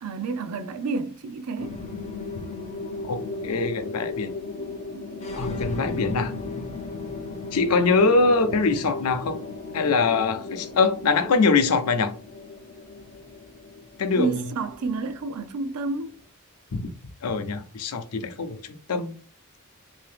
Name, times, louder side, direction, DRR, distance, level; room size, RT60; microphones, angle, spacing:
voice 1, 0.0-1.8 14.1-16.2, right 4 dB, 85° right, 0.4 m, -30 dB
sound 1, 1.6-16.2, left 3 dB, 30° left, 0.5 m, -36 dB
voice 2, 3.0-4.3 5.3-6.3 7.5-9.4 9.7-12.1 14.0-14.4 16.7-16.9 17.2-19.2, left 4 dB, 85° left, 0.5 m, -23 dB
2.7 x 2.7 x 3.3 m
head